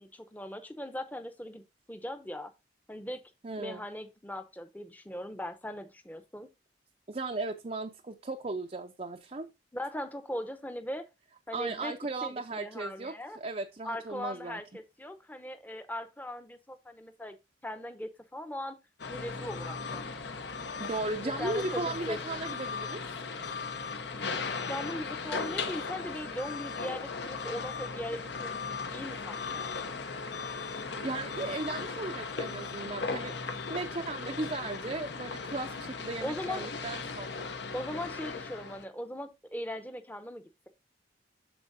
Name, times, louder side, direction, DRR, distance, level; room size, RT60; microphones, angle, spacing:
voice 1, 0.0-1.6 1.9-2.5 2.9-3.2 3.6-6.5 9.7-11.1 11.5-11.9 12.2-13.4 13.8-17.4 17.6-18.8 19.1-20.1 21.2-22.4 24.7-29.7 36.2-36.7 37.7-40.5, left 1 dB, 10° left, 0.8 m, -39 dB
voice 2, 3.4-3.9 7.1-9.5 11.5-14.6 20.8-23.0 31.0-33.3 33.7-37.5, right 3 dB, 35° right, 0.5 m, -36 dB
sound 1, 19.0-38.8, left 4 dB, 65° left, 0.8 m, -37 dB
13.0 x 4.4 x 2.6 m
head